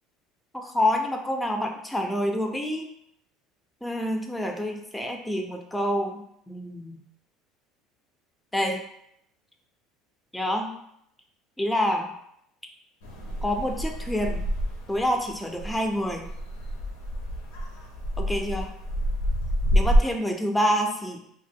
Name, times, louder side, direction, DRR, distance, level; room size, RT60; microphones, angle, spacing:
voice 1, 0.5-2.9 3.8-7.0 8.5-8.8 10.3-10.7 11.6-12.1 13.4-14.5 14.9-16.3 18.2-18.7 19.7-21.2, equal, 5° left, 3 dB, 0.4 m, -27 dB
sound 1, 13.0-20.0, equal, 85° left, 0.5 m, -27 dB
2.0 x 2.0 x 3.4 m, 0.73 s
supercardioid pair, 95°, 0 cm